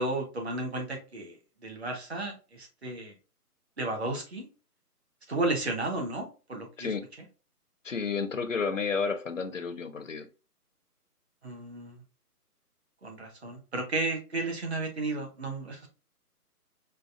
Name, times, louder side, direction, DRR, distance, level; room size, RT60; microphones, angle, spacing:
voice 1, 0.0-1.4 1.6-3.1 3.8-4.5 5.3-6.9 11.4-12.0 13.0-15.9, right 2 dB, 45° right, 1.0 m, -33 dB
voice 2, 7.8-10.3, left 5 dB, 55° left, 0.5 m, -31 dB
5.0 x 2.2 x 2.5 m
hypercardioid pair, 175°, 47 cm